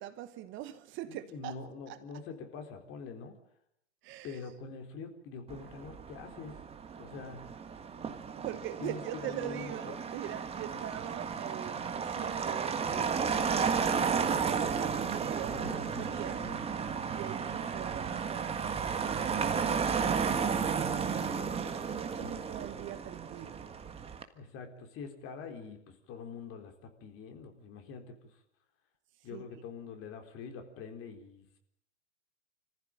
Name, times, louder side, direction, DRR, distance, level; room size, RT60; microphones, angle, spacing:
voice 1, 0.0-1.6 1.9-2.0 4.0-4.4 8.4-16.5 17.1-23.7 29.2-29.4, right 13 dB, 35° right, 1.1 m, -43 dB
voice 2, 1.1-3.4 4.2-6.6 7.0-7.6 8.8-9.9 10.7-10.8 15.5-16.7 22.2-22.4 24.3-28.4 29.2-31.6, left 5 dB, 35° left, 4.1 m, -45 dB
Motor vehicle (road), 5.5-24.2, right 6 dB, 15° right, 1.7 m, -33 dB
26.0 x 15.0 x 8.9 m
hypercardioid pair, 110°, 36 cm